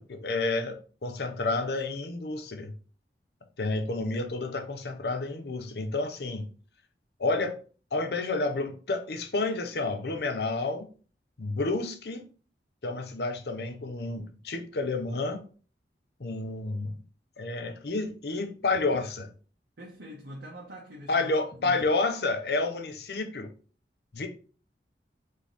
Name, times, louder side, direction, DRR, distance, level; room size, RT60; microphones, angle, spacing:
voice 1, 0.0-2.7 3.6-6.5 7.2-7.6 7.9-10.9 11.4-12.3 12.8-15.4 16.2-17.0 17.4-19.3 21.1-23.5 24.1-24.3, left 3 dB, 70° left, 0.7 m, -30 dB
voice 2, 19.8-21.8, equal, 80° right, 1.0 m, -44 dB
3.7 x 3.6 x 4.0 m
head